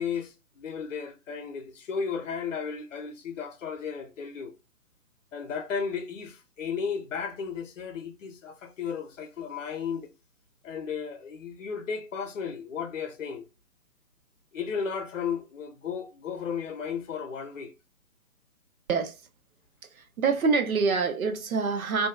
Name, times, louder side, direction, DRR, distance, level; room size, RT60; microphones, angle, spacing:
voice 1, 0.0-4.5 5.3-10.1 10.6-13.5 14.5-17.7, left 6 dB, 60° left, 0.7 m, -34 dB
voice 2, 19.9-22.1, right 4 dB, 70° right, 0.7 m, -26 dB
2.6 x 2.3 x 2.2 m
figure-of-eight pair, 135°, 44 cm